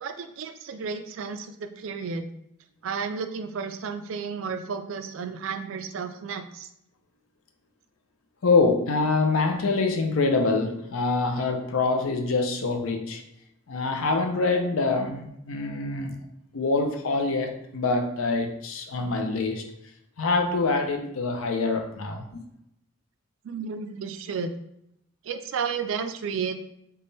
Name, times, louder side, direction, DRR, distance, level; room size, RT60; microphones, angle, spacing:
voice 1, 0.0-2.3 2.8-6.7 23.4-24.5 25.2-26.5, right 5 dB, 60° right, 0.3 m, -32 dB
voice 2, 8.4-13.2 13.7-16.2 16.5-19.7 20.2-22.4, left 3 dB, 65° left, 0.5 m, -25 dB
3.4 x 2.2 x 3.9 m
head